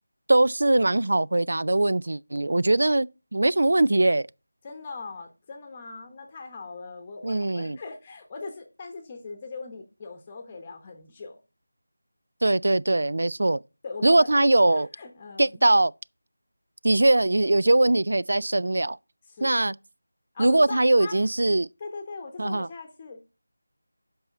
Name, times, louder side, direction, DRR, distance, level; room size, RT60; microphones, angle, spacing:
voice 1, 0.3-3.1 3.3-4.3 7.2-7.8 12.4-13.6 14.0-14.9 15.4-15.9 16.8-19.0 19.4-19.7 20.4-21.7 22.4-22.7, right 2 dB, 65° right, 0.3 m, -21 dB
voice 2, 4.6-11.4 13.8-15.6 19.3-19.7 20.3-21.3 21.8-23.2, left 4 dB, 20° left, 0.9 m, -40 dB
7.8 x 5.5 x 4.0 m
figure-of-eight pair, 170°, 0 cm